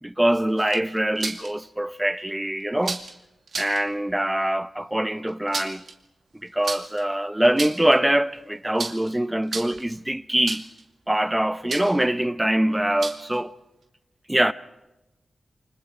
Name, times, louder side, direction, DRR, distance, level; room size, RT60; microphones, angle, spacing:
voice 1, 0.0-3.0 3.5-5.8 6.4-10.7 11.1-13.5 14.3-14.5, right 1 dB, 10° right, 0.8 m, -23 dB
sound 1, 0.6-1.5 2.8-3.1 3.5-3.8 5.3-5.9 6.6-7.0 7.4-8.0 8.8-9.1 9.4-9.9 10.5-10.8 11.7-12.0 13.0-13.4, right 4 dB, 75° right, 2.3 m, -32 dB
28.5 x 25.0 x 4.4 m
wide cardioid pair, 110°, 0 cm